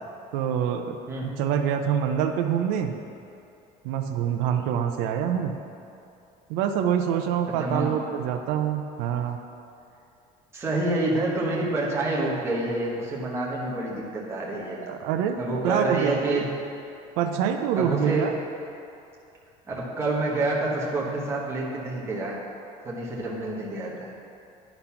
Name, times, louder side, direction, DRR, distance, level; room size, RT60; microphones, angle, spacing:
voice 1, 0.3-2.9 3.8-5.6 6.5-9.4 14.9-16.4 17.2-18.3, right 8 dB, 85° right, 5 dB, 0.5 m, -26 dB
voice 2, 1.1-1.4 7.6-7.9 10.5-14.8 15.4-16.5 17.8-18.3 19.7-22.4 22.8-24.1, right 2 dB, 15° right, -5 dB, 1.2 m, -28 dB
10.0 x 4.0 x 5.7 m, 2.7 s
cardioid pair, 175°, 15 cm